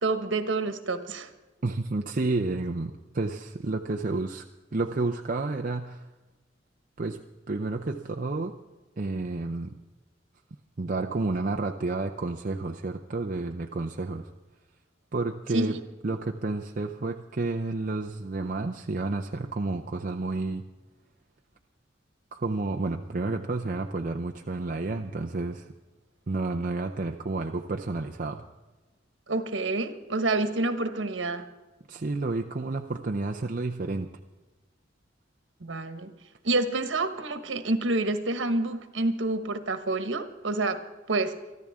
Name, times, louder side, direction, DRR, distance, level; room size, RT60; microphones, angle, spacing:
voice 1, 0.0-1.3 15.5-15.8 29.3-31.5 35.6-36.1 36.4-41.4, right 2 dB, 85° right, 8 dB, 1.3 m, -28 dB
voice 2, 1.6-4.5 4.7-6.0 7.0-7.2 7.5-8.6 9.0-9.8 10.8-14.3 15.1-15.8 16.0-20.6 22.3-25.7 26.3-28.4 31.9-34.1, right 3 dB, 45° right, 3 dB, 0.6 m, -30 dB
24.5 x 14.0 x 3.6 m, 1.2 s
head